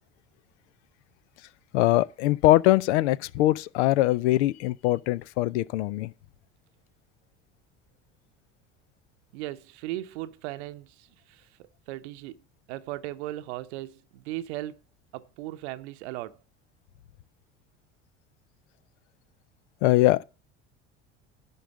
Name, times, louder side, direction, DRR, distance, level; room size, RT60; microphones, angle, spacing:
voice 1, 1.7-6.1 19.8-20.2, left 16 dB, 70° left, 0.6 m, -22 dB
voice 2, 9.3-12.4 12.7-14.8 15.1-16.4, right 15 dB, 70° right, 0.8 m, -37 dB
11.0 x 4.0 x 7.6 m
hypercardioid pair, 70°, 35 cm